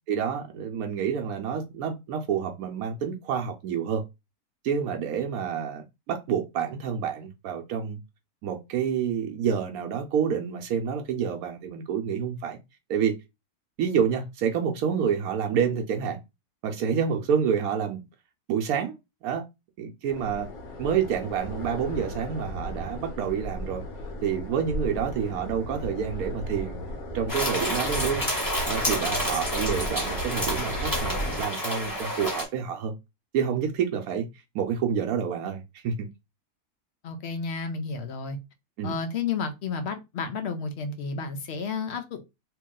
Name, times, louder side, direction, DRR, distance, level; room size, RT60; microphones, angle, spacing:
voice 1, 0.1-4.1 4.6-8.0 8.4-12.6 12.9-13.2 13.8-16.2 16.6-18.0 18.5-19.0 19.2-19.4 19.8-20.5 20.8-23.8 24.2-26.8 27.1-28.3 28.7-33.0 33.3-34.3 34.5-36.1 38.8-39.0, right 7 dB, 80° right, 1.0 m, -28 dB
sound 1, 20.1-31.4, equal, 75° left, 1.6 m, -35 dB
sound 2, 27.3-32.4, left 1 dB, 15° left, 1.1 m, -29 dB
voice 2, 37.0-38.4 38.8-42.2, left 5 dB, 60° left, 0.8 m, -31 dB
2.9 x 2.9 x 3.7 m
omnidirectional pair, 1.5 m